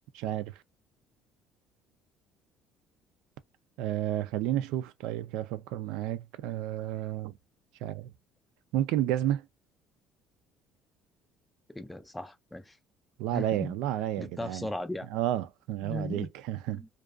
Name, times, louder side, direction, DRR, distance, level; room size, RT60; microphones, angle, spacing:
voice 1, 0.1-0.6 3.8-7.3 7.8-8.1 8.7-9.5 13.2-14.7 15.1-16.8, right 12 dB, 85° right, 0.3 m, -31 dB
voice 2, 11.7-12.8 13.3-13.7 14.2-15.1 15.8-16.3 16.7-16.9, left 1 dB, 5° left, 0.4 m, -37 dB
2.4 x 2.3 x 2.3 m
cardioid pair, 155°, 0 cm